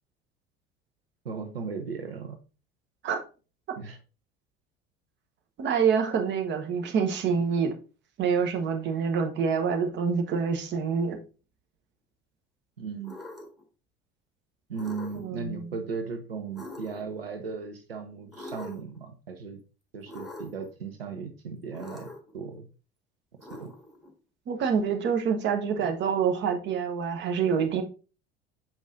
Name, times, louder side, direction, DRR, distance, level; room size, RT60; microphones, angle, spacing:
voice 1, 1.2-2.4 3.8-4.0 12.8-13.2 14.7-19.6 19.9-22.1 22.3-22.7 23.4-23.7, right 5 dB, 80° right, 0.6 m, -36 dB
voice 2, 5.6-7.7 8.2-11.2 15.1-15.7 24.5-27.8, right 6 dB, 40° right, 1.0 m, -26 dB
sound 1, 13.0-13.6 14.7-15.4 16.6-17.2 18.3-19.0 20.1-20.7 21.7-22.3 23.4-24.1, left 2 dB, ahead, 1.6 m, -43 dB
7.1 x 5.2 x 2.6 m
figure-of-eight pair, 65°, 29 cm